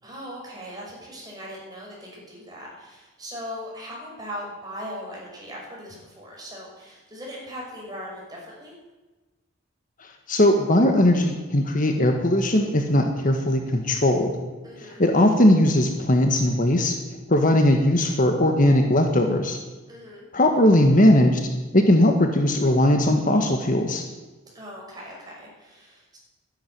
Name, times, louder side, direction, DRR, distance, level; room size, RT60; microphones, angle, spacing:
voice 1, 0.0-8.7 14.6-15.0 19.9-20.2 24.5-26.2, equal, 20° right, -3 dB, 6.1 m, -39 dB
voice 2, 10.3-14.4 14.8-17.0 17.3-19.6 20.3-24.0, left 1 dB, 40° left, 4 dB, 1.4 m, -19 dB
13.0 x 10.5 x 9.4 m, 1.2 s
head